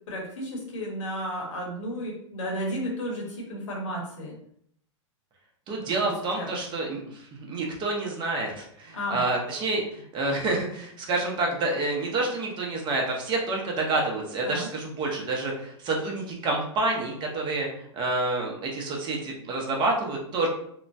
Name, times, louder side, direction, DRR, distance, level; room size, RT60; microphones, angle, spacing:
voice 1, 0.1-4.3 5.8-6.5 8.9-9.2 14.4-14.7, equal, 70° left, -2 dB, 1.2 m, -33 dB
voice 2, 5.7-17.7 17.9-20.5, right 2 dB, 30° right, 0 dB, 0.8 m, -28 dB
2.9 x 2.1 x 2.6 m, 0.68 s
hypercardioid pair, 115°, 16 cm